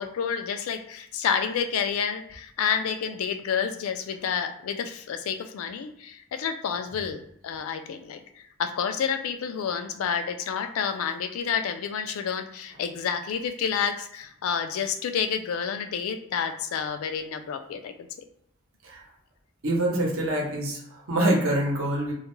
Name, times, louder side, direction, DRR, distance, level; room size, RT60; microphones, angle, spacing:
voice 1, 0.0-17.9, left 7 dB, 80° left, 8 dB, 0.3 m, -29 dB
voice 2, 19.6-22.1, right 1 dB, 75° right, -1 dB, 0.8 m, -25 dB
2.3 x 2.1 x 3.0 m, 0.72 s
head